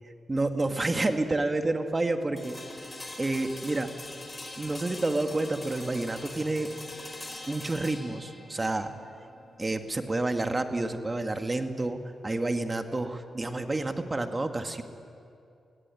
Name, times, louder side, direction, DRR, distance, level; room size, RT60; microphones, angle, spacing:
voice 1, 0.3-2.6 2.8-2.9 3.2-3.9 4.6-6.7 7.5-8.9 9.6-14.8, right 2 dB, 30° right, 6 dB, 2.1 m, -29 dB
sound 1, 2.4-12.3, left 2 dB, 25° left, 4.6 m, -44 dB
22.5 x 17.0 x 9.9 m, 2.5 s
cardioid pair, 60°, 0 cm